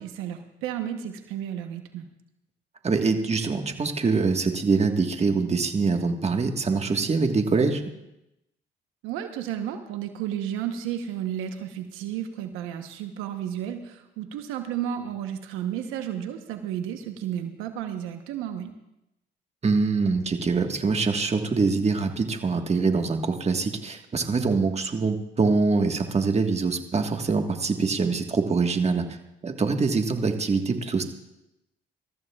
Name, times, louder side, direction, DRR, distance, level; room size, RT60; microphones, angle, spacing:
voice 1, 0.0-2.1 9.0-18.7, right 10 dB, 90° right, 6 dB, 1.0 m, -32 dB
voice 2, 2.8-7.8 19.6-29.0 29.4-31.0, right 4 dB, 30° right, 5 dB, 1.5 m, -24 dB
20.5 x 14.0 x 2.4 m, 0.88 s
supercardioid pair, 70°, 20 cm